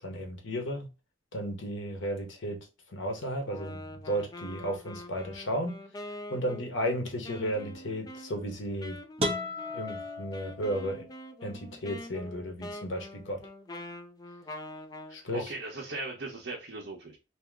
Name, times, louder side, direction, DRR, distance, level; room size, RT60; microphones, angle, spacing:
voice 1, 0.0-0.9 1.3-5.8 6.3-9.0 9.7-11.1 11.4-13.5 15.1-15.5, equal, 90° left, 1.1 m, -34 dB
Wind instrument woodwind instrument, 3.4-15.2, left 1 dB, 20° left, 0.4 m, -45 dB
sound 1, 9.2-11.1, left 1 dB, 30° right, 0.8 m, -34 dB
voice 2, 15.2-17.2, right 2 dB, 65° right, 0.8 m, -38 dB
2.9 x 2.8 x 3.6 m
head